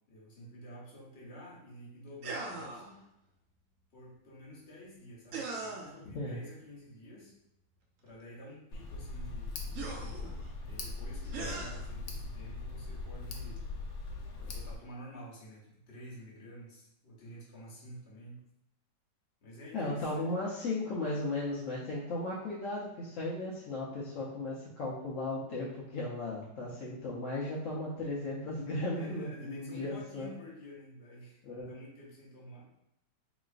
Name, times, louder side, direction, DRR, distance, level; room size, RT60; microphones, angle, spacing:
voice 1, 0.1-3.0 3.9-7.3 8.0-13.6 14.4-18.4 19.4-20.5 28.9-31.4 31.7-32.7, equal, 45° left, -5 dB, 1.1 m, -50 dB
sound 1, 2.2-2.9 5.3-6.0 8.1-8.2 9.7-10.5 11.3-11.9, right 3 dB, 65° right, 0.8 m, -40 dB
Tick, 8.7-14.8, left 3 dB, 90° left, 1.3 m, -40 dB
voice 2, 19.7-30.3 31.4-31.7, left 2 dB, 65° left, -6 dB, 0.8 m, -36 dB
4.0 x 3.0 x 2.4 m, 0.78 s
omnidirectional pair, 1.9 m